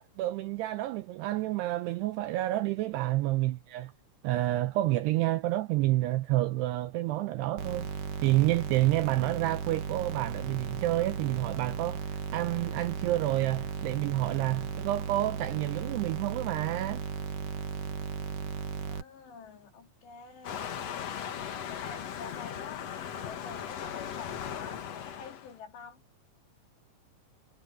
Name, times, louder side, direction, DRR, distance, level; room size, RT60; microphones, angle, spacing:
voice 1, 0.0-3.9 4.2-7.9 8.2-17.0, right 16 dB, 85° right, 2.4 m, -29 dB
sound 1, 7.6-19.0, right 6 dB, 55° right, 3.1 m, -36 dB
voice 2, 18.8-20.8 21.6-26.0, left 6 dB, 65° left, 4.9 m, -47 dB
Waves surf, 20.4-25.5, left 8 dB, 80° left, 1.4 m, -38 dB
omnidirectional pair, 5.4 m